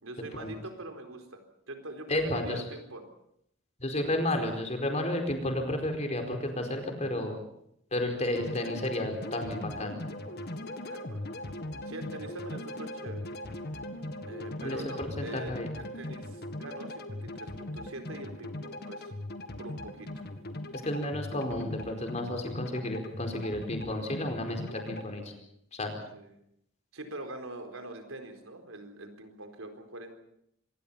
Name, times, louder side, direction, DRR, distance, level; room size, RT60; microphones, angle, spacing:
voice 1, 0.0-3.1 10.9-11.3 11.8-13.3 14.2-19.1 19.6-20.3 26.1-26.4 26.9-30.1, right 1 dB, 80° right, 6 dB, 4.2 m, -43 dB
voice 2, 2.1-2.6 3.8-7.4 7.9-10.0 14.6-15.7 20.7-25.3 25.7-26.0, left 1 dB, 35° left, 4 dB, 4.6 m, -32 dB
sound 1, 8.3-25.1, left 1 dB, 50° left, 1.9 m, -40 dB
26.0 x 21.0 x 5.7 m, 0.74 s
head